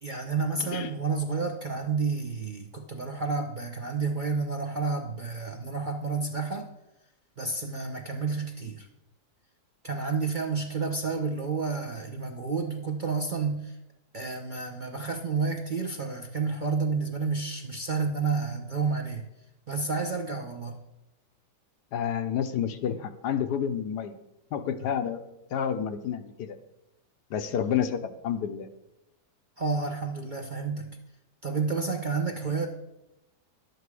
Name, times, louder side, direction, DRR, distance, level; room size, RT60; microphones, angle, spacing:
voice 1, 0.0-6.7 7.4-8.9 9.8-13.8 14.1-19.2 19.7-20.8 29.6-30.9 31.4-32.7, right 4 dB, 40° right, 3 dB, 0.7 m, -30 dB
voice 2, 21.9-24.1 24.5-25.2 25.5-26.6 27.3-28.7, left 8 dB, 75° left, 10 dB, 1.3 m, -29 dB
11.0 x 8.0 x 4.8 m, 0.89 s
omnidirectional pair, 1.8 m